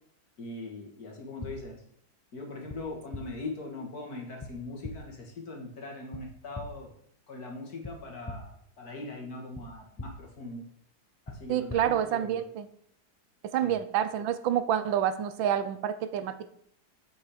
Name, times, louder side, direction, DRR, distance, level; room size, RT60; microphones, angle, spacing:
voice 1, 0.4-1.8 2.3-6.9 7.3-10.7 11.3-12.4 13.6-13.8, left 2 dB, 50° left, 1 dB, 2.6 m, -41 dB
sound 1, 1.4-1.5 2.7-2.8 3.1-3.2 4.4-4.5 4.8-4.9 6.1-6.2 6.5-6.6 7.8-7.9 8.2-8.4 9.5-9.6 10.0-10.1 11.2-11.4 11.7-11.8, left 2 dB, 15° left, 0.8 m, -39 dB
voice 2, 11.5-12.7 13.5-16.5, right 10 dB, 80° right, 13 dB, 1.5 m, -28 dB
8.9 x 8.2 x 5.0 m, 0.70 s
omnidirectional pair, 2.1 m